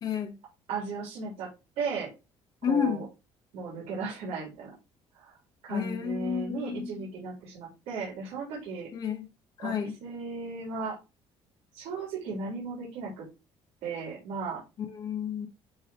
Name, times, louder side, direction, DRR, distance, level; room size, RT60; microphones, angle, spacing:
voice 1, 0.0-0.4 2.6-3.0 5.7-7.0 8.9-9.3 9.6-10.0 14.9-15.5, left 7 dB, 40° left, 1.0 m, -31 dB
voice 2, 0.7-1.5 1.8-2.1 2.7-3.1 3.5-4.7 5.1-5.3 5.6-8.9 9.6-11.0 11.7-13.3 13.8-14.6, right 4 dB, 80° right, 3.4 m, -36 dB
10.5 x 3.6 x 2.9 m
cardioid pair, 175°, 11 cm